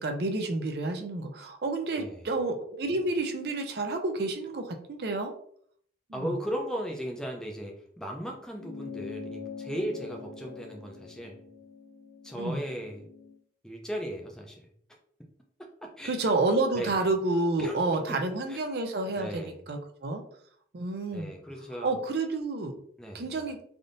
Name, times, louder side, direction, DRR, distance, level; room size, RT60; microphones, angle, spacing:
voice 1, 0.0-5.3 6.1-6.3 12.3-12.6 16.0-20.2 20.7-21.3 21.8-22.8 23.1-23.6, right 2 dB, 60° right, 5 dB, 0.4 m, -29 dB
voice 2, 6.1-11.4 12.2-13.1 13.6-14.7 15.6-16.2 16.7-16.9 17.6-18.2 18.5-18.6 19.1-19.6 21.1-21.9 23.0-23.4, equal, 5° left, 0 dB, 0.4 m, -37 dB
sound 1, 8.6-13.4, left 5 dB, 70° left, 0.3 m, -44 dB
3.4 x 2.6 x 2.5 m, 0.63 s
head